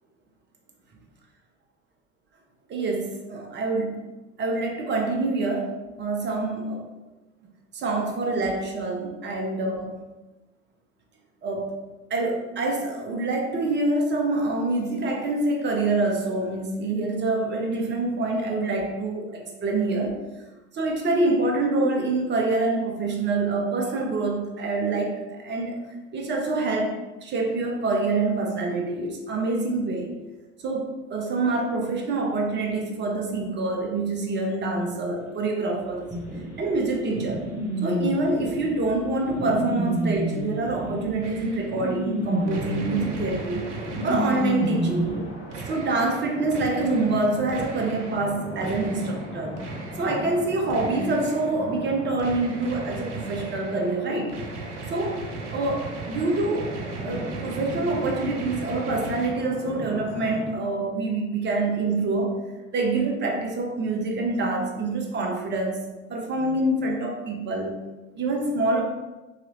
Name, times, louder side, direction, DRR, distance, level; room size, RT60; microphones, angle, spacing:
voice 1, 2.7-4.0 4.4-6.9 7.7-10.0 11.4-11.8 12.1-20.2 20.7-25.8 26.1-30.1 30.6-36.1 36.6-37.5 37.8-43.7 44.0-45.2 45.7-49.6 50.0-54.4 54.9-55.2 55.5-56.7 57.0-62.4 62.7-65.8 66.1-67.8 68.2-68.8, right 2 dB, 30° right, 2 dB, 0.8 m, -26 dB
sound 1, 36.1-45.2, right 1 dB, 5° right, 1.5 m, -29 dB
sound 2, 41.2-41.8 42.5-44.8 45.5-48.3 48.6-50.4 50.7-51.5 52.2-59.3, right 4 dB, 75° right, 0.6 m, -38 dB
sound 3, 42.2-60.4, left 1 dB, 30° left, 1.3 m, -39 dB
4.0 x 2.9 x 3.0 m, 1.1 s
figure-of-eight pair, 60°, 35 cm